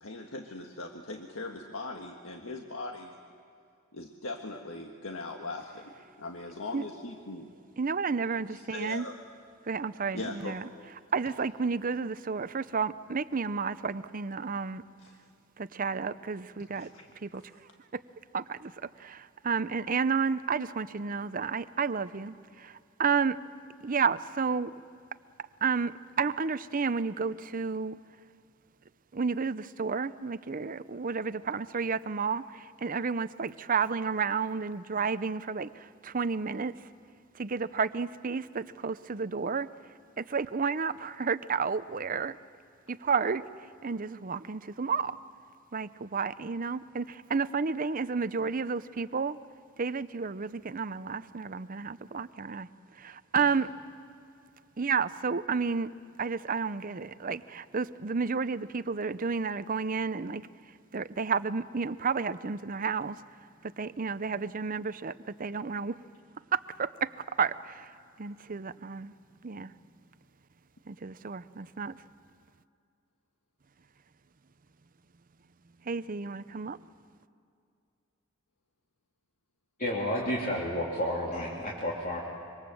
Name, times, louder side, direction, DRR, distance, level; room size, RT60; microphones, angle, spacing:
voice 1, 0.0-3.1 3.9-7.5 8.5-9.1 10.1-10.5 15.0-15.1 16.7-17.0, left 2 dB, 85° left, 2 dB, 1.6 m, -40 dB
voice 2, 7.8-9.1 9.7-10.7 11.1-14.8 15.6-16.9 17.2-18.0 18.3-23.4 23.8-24.7 25.4-28.0 29.1-36.9 37.3-39.7 40.2-42.4 42.9-45.2 45.7-49.4 49.8-53.7 54.8-55.9 56.2-60.5 60.9-63.2 63.6-66.0 66.5-67.1 67.4-67.9 68.2-69.1 69.4-69.7 70.9-72.0 75.8-76.8, right 5 dB, 40° right, 14 dB, 0.6 m, -31 dB
voice 3, 79.8-82.2, equal, 45° left, -5 dB, 3.4 m, -31 dB
26.0 x 24.5 x 7.7 m, 2.5 s
head